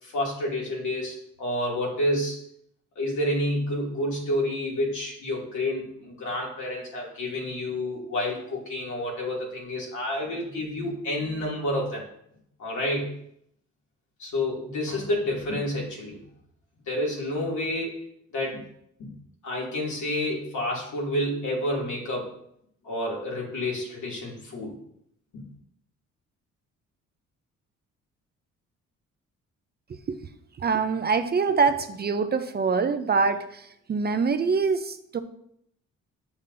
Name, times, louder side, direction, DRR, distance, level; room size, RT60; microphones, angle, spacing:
voice 1, 0.0-2.4 3.0-12.0 12.6-13.1 14.2-16.2 16.9-18.0 18.3-18.6 19.0-19.1 19.4-22.3 22.8-24.8 25.3-25.5, left 1 dB, 70° left, -3 dB, 2.6 m, -29 dB
voice 2, 29.9-30.2 30.6-35.2, right 5 dB, 35° right, 9 dB, 0.5 m, -25 dB
7.2 x 6.8 x 2.7 m, 0.73 s
cardioid pair, 90°, 30 cm